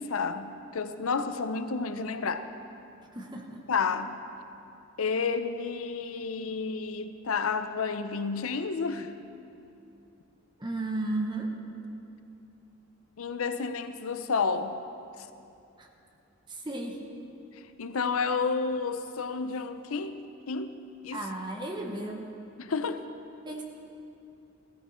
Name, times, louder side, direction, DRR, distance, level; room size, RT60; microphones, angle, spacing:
voice 1, 0.0-2.5 3.7-4.1 5.0-9.1 13.2-14.8 15.2-15.3 17.8-20.7 21.0-21.2 22.6-23.1, left 5 dB, 85° left, 10 dB, 0.6 m, -30 dB
voice 2, 3.1-3.6 10.6-11.5 15.8-15.9 16.5-17.0 21.1-22.4 23.4-23.6, right 2 dB, 20° right, 1 dB, 1.2 m, -34 dB
16.0 x 14.0 x 4.4 m, 2.7 s
head